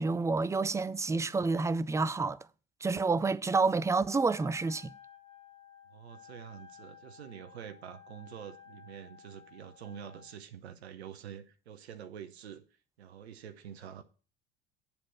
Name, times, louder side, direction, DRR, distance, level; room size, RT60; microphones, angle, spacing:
voice 1, 0.0-2.4 2.8-4.9, right 3 dB, 10° right, 0.4 m, -29 dB
Wind instrument woodwind instrument, 4.2-10.4, left 8 dB, 15° left, 1.5 m, -55 dB
voice 2, 5.9-12.6 13.0-14.0, right 9 dB, 85° right, 0.9 m, -47 dB
9.7 x 4.2 x 7.5 m
hypercardioid pair, 75°, 31 cm